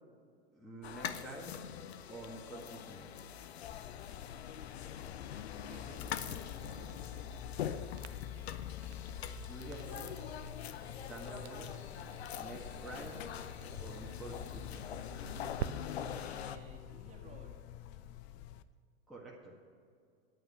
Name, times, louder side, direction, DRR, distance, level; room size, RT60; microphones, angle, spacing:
voice 1, 0.5-1.6 2.1-3.1 9.4-10.4 11.0-11.7 12.4-13.2 13.8-15.0 19.1-19.6, right 2 dB, ahead, -5 dB, 1.7 m, -48 dB
sound 1, 0.8-16.6, left 9 dB, 70° left, 0.7 m, -44 dB
Buzz, 3.6-18.6, left 12 dB, 35° left, 0.4 m, -48 dB
voice 2, 5.3-7.4 16.1-17.6, right 2 dB, 20° right, -1 dB, 2.0 m, -55 dB
Crackle, 6.1-15.7, right 9 dB, 80° right, 0.6 m, -49 dB
9.5 x 8.9 x 6.4 m, 2.2 s
hypercardioid pair, 100°, 33 cm